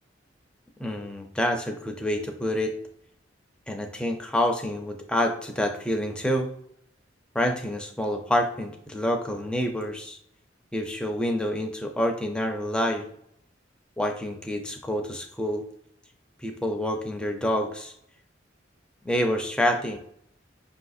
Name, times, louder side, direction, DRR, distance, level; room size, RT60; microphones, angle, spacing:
voice 1, 0.8-2.7 3.7-6.5 7.3-10.2 10.7-13.1 14.0-15.6 16.4-17.9 19.0-20.0, equal, 5° left, 3 dB, 0.4 m, -27 dB
6.0 x 2.6 x 2.4 m, 0.69 s
head